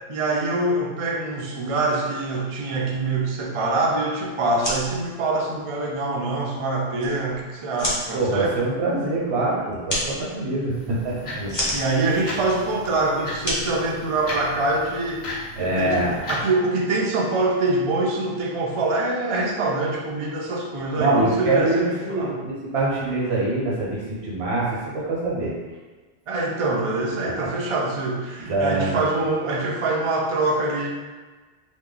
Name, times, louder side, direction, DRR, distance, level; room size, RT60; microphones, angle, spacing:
voice 1, 0.1-8.5 11.7-22.4 26.3-30.9, right 2 dB, 45° right, -2 dB, 0.4 m, -24 dB
sound 1, 4.4-14.6, equal, 20° left, 0.7 m, -33 dB
voice 2, 8.1-11.5 15.6-16.2 21.0-25.5 27.2-27.5 28.5-29.0, right 2 dB, 80° right, -5 dB, 1.2 m, -24 dB
sound 2, 10.7-16.4, left 1 dB, 65° left, 1.0 m, -36 dB
2.9 x 2.2 x 3.7 m, 1.3 s
omnidirectional pair, 1.1 m